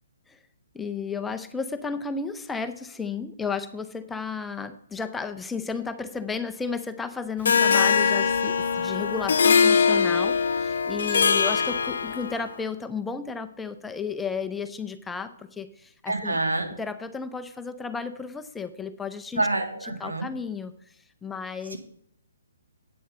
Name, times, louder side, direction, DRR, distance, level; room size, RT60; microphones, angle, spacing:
voice 1, 0.7-16.4 16.8-19.5 20.0-20.9 21.2-21.8, left 5 dB, 10° left, 9 dB, 0.6 m, -33 dB
Harp, 7.4-12.5, left 6 dB, 65° left, 0.7 m, -22 dB
voice 2, 16.1-16.7 19.4-20.3 21.7-21.8, right 2 dB, 85° right, 4 dB, 2.0 m, -27 dB
8.8 x 6.5 x 6.7 m, 0.69 s
figure-of-eight pair, 135°, 0 cm